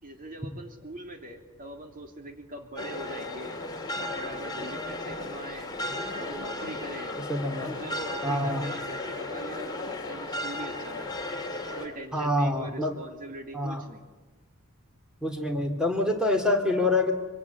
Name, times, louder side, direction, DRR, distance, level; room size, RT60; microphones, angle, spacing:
voice 1, 0.0-3.6 4.0-5.8 6.2-7.2 7.5-11.3 11.8-14.1, right 1 dB, 40° right, 4 dB, 3.0 m, -42 dB
sound 1, 2.8-11.9, left 2 dB, 20° left, 3.1 m, -35 dB
voice 2, 7.3-7.8 8.2-8.7 12.1-12.9 13.5-13.8 15.2-17.1, left 1 dB, 5° right, 3 dB, 3.1 m, -26 dB
24.5 x 24.0 x 9.7 m, 1.2 s
head